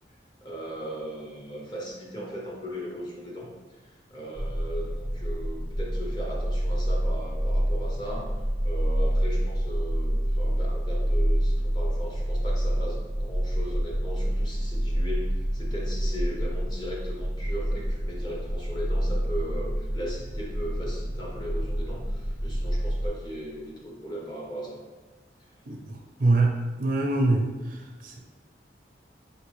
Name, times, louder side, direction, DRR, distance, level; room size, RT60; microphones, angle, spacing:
voice 1, 0.4-3.5 3.8-8.3 8.6-24.8, equal, 25° left, -3 dB, 0.8 m, -38 dB
sound 1, 4.3-23.1, equal, 55° left, 0.9 m, -28 dB
voice 2, 25.7-27.5 27.7-28.2, right 2 dB, 50° right, 2 dB, 0.5 m, -25 dB
4.3 x 3.0 x 3.1 m, 1.2 s
head